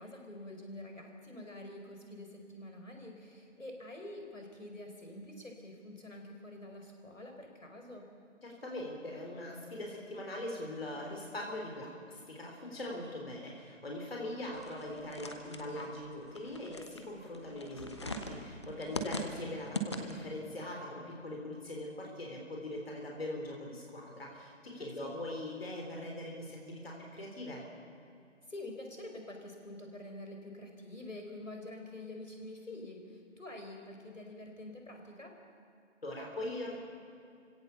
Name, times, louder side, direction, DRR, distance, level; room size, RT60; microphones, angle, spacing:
voice 1, 0.0-8.1 19.1-19.3 24.8-25.1 28.5-35.3, left 1 dB, 80° left, 2 dB, 4.7 m, -47 dB
voice 2, 8.4-27.6 36.0-36.8, left 1 dB, 50° left, 0 dB, 3.9 m, -41 dB
sound 1, 14.5-20.4, equal, 20° left, 1.1 m, -41 dB
26.5 x 17.0 x 7.0 m, 2.4 s
figure-of-eight pair, 155°, 38 cm